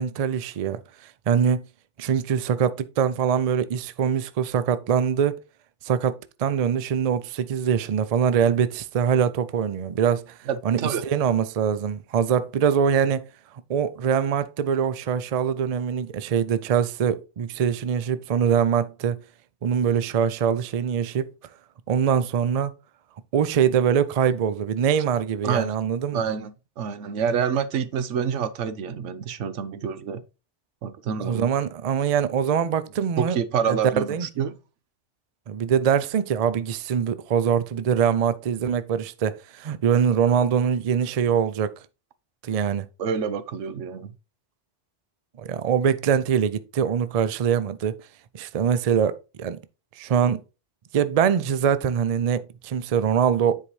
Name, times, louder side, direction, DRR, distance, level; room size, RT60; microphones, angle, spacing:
voice 1, 0.0-1.6 2.0-5.4 5.8-10.3 10.6-13.3 13.7-19.2 19.6-21.3 21.9-22.7 23.3-26.2 31.2-33.4 33.7-34.3 35.5-41.7 42.4-42.9 45.4-47.9 48.3-49.6 50.0-50.4 50.9-53.6, right 7 dB, 50° right, 0.4 m, -23 dB
voice 2, 10.5-11.0 25.4-25.7 26.1-30.2 30.8-31.5 33.2-34.6 43.0-44.1, right 7 dB, 85° right, 1.0 m, -27 dB
9.8 x 4.8 x 3.1 m
omnidirectional pair, 1.2 m